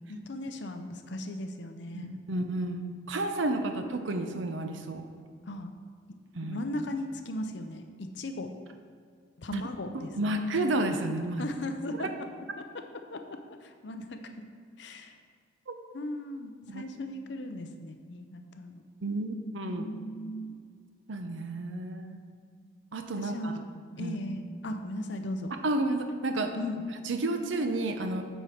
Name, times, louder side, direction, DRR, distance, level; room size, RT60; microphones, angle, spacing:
voice 1, 0.1-2.1 5.4-5.7 6.1-8.5 9.4-10.4 11.4-12.3 12.6-14.5 14.8-15.2 15.9-18.8 19.6-20.6 23.2-23.6 24.0-25.5 26.5-26.9, left 1 dB, 60° left, 7 dB, 0.6 m, -37 dB
voice 2, 1.9-5.0 6.3-6.6 9.5-9.6 9.9-11.4 12.0-12.1 15.7-15.8 16.7-16.8 19.0-19.8 21.1-22.3 22.9-23.5 24.0-24.2 25.6-26.5 27.1-28.2, right 2 dB, 70° right, 6 dB, 0.6 m, -31 dB
8.0 x 4.4 x 5.0 m, 2.1 s
head